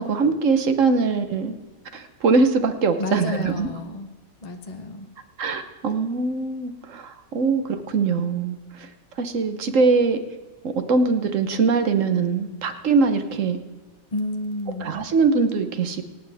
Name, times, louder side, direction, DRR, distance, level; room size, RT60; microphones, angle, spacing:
voice 1, 0.0-1.5 1.9-3.7 5.4-8.9 9.2-10.2 10.6-13.6 14.8-16.0, right 4 dB, 50° right, 9 dB, 1.2 m, -22 dB
voice 2, 3.0-4.1 4.4-5.1 14.1-14.9, left 2 dB, 40° left, 4 dB, 0.6 m, -30 dB
25.0 x 9.5 x 3.5 m, 1.2 s
omnidirectional pair, 1.9 m